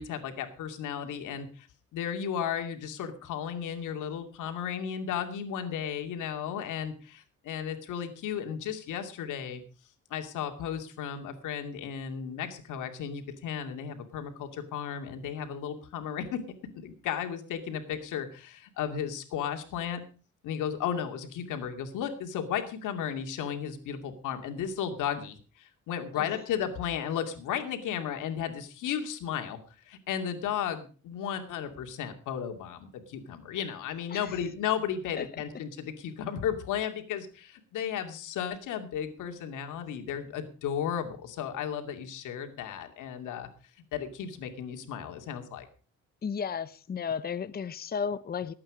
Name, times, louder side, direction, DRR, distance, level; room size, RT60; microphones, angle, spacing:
voice 1, 0.0-1.7 1.9-9.6 10.1-16.4 16.7-20.0 20.4-29.6 29.8-43.5 43.9-45.7, left 8 dB, 85° left, 2.5 m, -34 dB
voice 2, 34.1-34.4 35.2-35.3 46.2-48.5, left 6 dB, 30° left, 0.7 m, -34 dB
19.5 x 8.8 x 5.0 m
cardioid pair, 90°, 30 cm